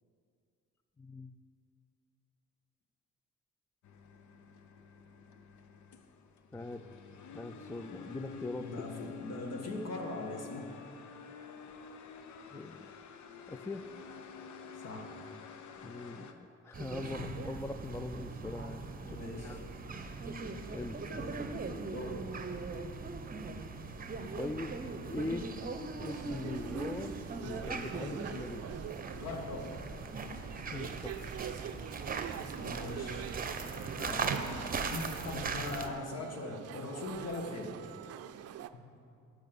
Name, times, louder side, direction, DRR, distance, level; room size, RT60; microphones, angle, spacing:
voice 1, 1.0-1.3 6.5-6.9 7.3-8.9 12.5-12.9 13.5-13.9 15.8-19.6 20.0-20.3 20.7-21.0 24.4-24.8 25.1-25.5 26.0-27.2 27.4-28.6 30.7-31.3 31.7-31.8, left 2 dB, 10° left, 10 dB, 0.3 m, -41 dB
sound 1, 3.8-16.3, left 6 dB, 70° left, 0.8 m, -49 dB
voice 2, 8.6-10.7 14.8-15.1 17.0-17.3 19.0-19.6 21.1-21.5 21.9-22.3 29.1-29.8 32.6-33.3 34.0-37.7 38.7-38.8, left 2 dB, 55° left, 2 dB, 1.8 m, -41 dB
sound 2, 16.7-35.9, right 4 dB, 30° right, 0.8 m, -40 dB
sound 3, 26.0-38.7, right 10 dB, 55° right, 0.5 m, -45 dB
12.0 x 5.7 x 6.9 m, 2.5 s
cardioid pair, 90°, 30 cm